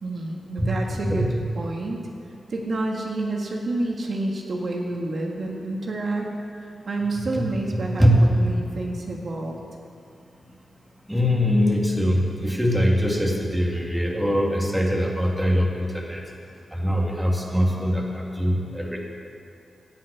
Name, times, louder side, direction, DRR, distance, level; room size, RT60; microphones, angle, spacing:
voice 1, 0.0-2.0 2.5-6.3 6.6-8.0 8.4-9.6, right 2 dB, 60° right, 0 dB, 1.6 m, -29 dB
voice 2, 0.6-1.2 7.7-8.1 11.1-16.2 16.7-19.0, equal, 5° right, -1 dB, 2.0 m, -22 dB
16.5 x 5.7 x 8.2 m, 2.5 s
cardioid pair, 80°, 0 cm